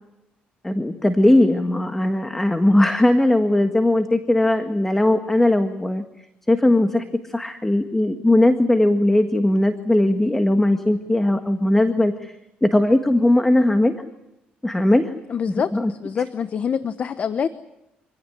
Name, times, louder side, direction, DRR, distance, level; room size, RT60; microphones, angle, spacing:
voice 1, 0.6-6.0 6.5-12.3 12.6-14.0 14.6-15.1 15.5-15.9, left 1 dB, 10° left, 7 dB, 1.7 m, -19 dB
voice 2, 15.3-17.5, left 7 dB, 45° left, 11 dB, 1.0 m, -25 dB
26.0 x 17.0 x 9.5 m, 0.89 s
cardioid pair, 100°, 3 cm